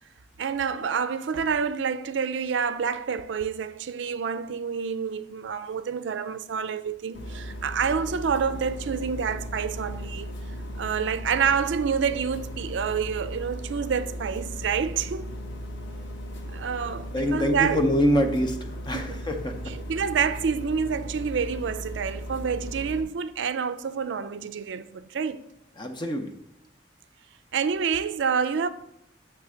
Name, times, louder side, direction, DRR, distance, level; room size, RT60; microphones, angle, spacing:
voice 1, 0.4-10.3 10.8-15.3 16.5-17.8 18.9-19.2 19.7-25.4 27.5-28.7, right 6 dB, 75° right, 0.4 m, -28 dB
sound 1, 7.1-23.0, equal, 70° left, 1.1 m, -37 dB
voice 2, 17.1-19.7 25.8-26.3, equal, 25° left, 0.7 m, -25 dB
7.8 x 3.3 x 6.2 m
head